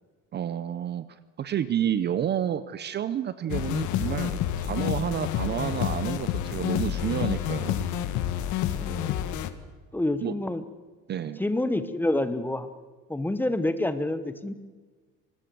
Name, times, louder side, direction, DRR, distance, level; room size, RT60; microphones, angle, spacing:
voice 1, 0.3-1.0 1.4-7.9 10.2-10.4 11.1-11.4, right 10 dB, 30° right, 14 dB, 0.7 m, -30 dB
sound 1, 3.5-9.5, left 11 dB, 60° left, 1.7 m, -29 dB
voice 2, 8.8-9.2 9.9-10.6 11.4-12.7 13.1-14.5, left 1 dB, 5° left, 12 dB, 1.0 m, -28 dB
24.5 x 20.0 x 7.7 m, 1.4 s
cardioid pair, 165°, 34 cm